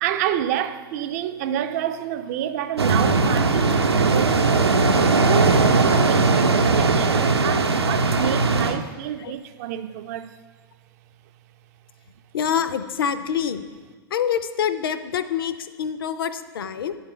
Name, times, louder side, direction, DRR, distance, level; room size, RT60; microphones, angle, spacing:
voice 1, 0.0-4.9 5.2-10.4, right 10 dB, 40° right, 0.4 m, -28 dB
sound 1, 2.8-8.8, right 3 dB, 80° right, 0.6 m, -19 dB
voice 2, 12.3-13.6 14.1-17.0, left 8 dB, 60° left, 0.5 m, -26 dB
10.5 x 4.2 x 3.8 m
figure-of-eight pair, 105°, 13 cm